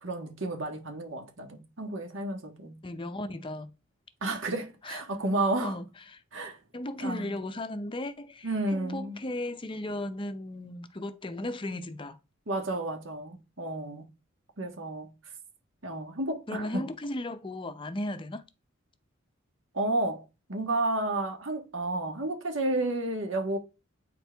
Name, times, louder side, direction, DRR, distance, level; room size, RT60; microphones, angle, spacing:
voice 1, 0.0-2.8 4.2-5.8 6.3-6.6 7.0-7.4 8.4-9.2 12.5-14.1 14.6-15.1 15.8-16.8 19.7-23.6, right 2 dB, 70° right, 1.5 m, -31 dB
voice 2, 2.8-3.7 4.8-5.0 5.6-6.2 6.7-12.2 16.5-18.4, left 1 dB, 25° left, 0.5 m, -36 dB
9.0 x 4.5 x 3.4 m
head